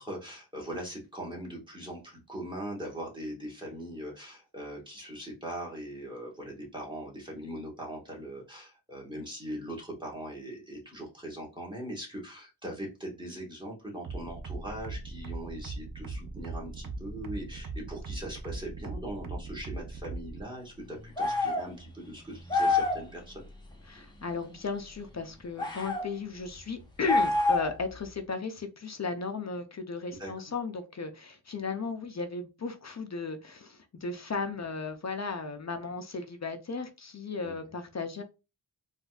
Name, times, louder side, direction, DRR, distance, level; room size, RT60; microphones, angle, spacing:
voice 1, 0.0-23.4 30.2-30.3 37.4-37.5, right 1 dB, 10° right, -2 dB, 1.4 m, -40 dB
sound 1, 14.0-20.4, right 3 dB, 50° right, 0.6 m, -39 dB
sound 2, 21.2-21.7 22.5-23.0 25.6-26.1 27.1-27.8, left 3 dB, 10° left, 0.8 m, -26 dB
voice 2, 23.9-38.2, left 4 dB, 40° left, 7 dB, 0.5 m, -35 dB
3.9 x 2.5 x 2.3 m, 0.28 s
wide cardioid pair, 90°, 44 cm